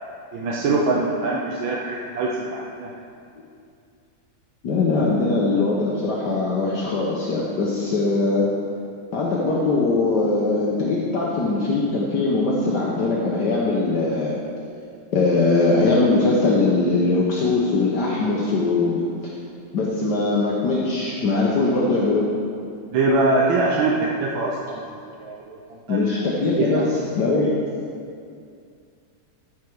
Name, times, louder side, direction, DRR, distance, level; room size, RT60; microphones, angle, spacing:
voice 1, 0.3-2.9 22.9-24.8 25.2-25.6 25.9-26.2 26.6-26.9, right 3 dB, 90° right, -3 dB, 1.6 m, -23 dB
voice 2, 4.6-8.5 9.1-14.3 15.1-19.3 19.7-22.3 25.9-27.5, left 3 dB, 65° left, -4 dB, 1.6 m, -21 dB
13.5 x 5.8 x 4.7 m, 2.4 s
omnidirectional pair, 2.1 m